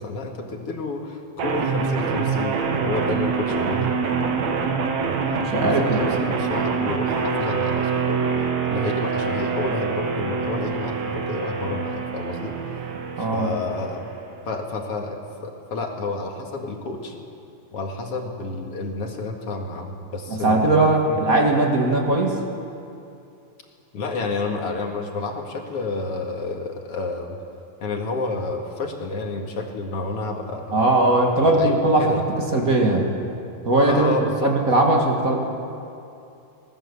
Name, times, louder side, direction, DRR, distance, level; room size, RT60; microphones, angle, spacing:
voice 1, 0.0-3.9 5.6-8.2 8.7-12.5 13.2-14.0 14.4-17.2 17.7-20.8 21.1-21.2 23.9-27.4 27.8-30.8 31.4-32.2 33.9-34.5, left 3 dB, 45° left, 2 dB, 2.5 m, -30 dB
sound 1, 1.4-14.4, right 5 dB, 55° right, 2.4 m, -25 dB
voice 2, 5.4-6.0 13.2-13.6 20.3-22.4 30.7-32.1 32.5-33.1 33.6-34.1 34.4-35.3, right 2 dB, 30° right, 0 dB, 1.8 m, -19 dB
24.5 x 19.0 x 7.1 m, 2.6 s
omnidirectional pair, 4.3 m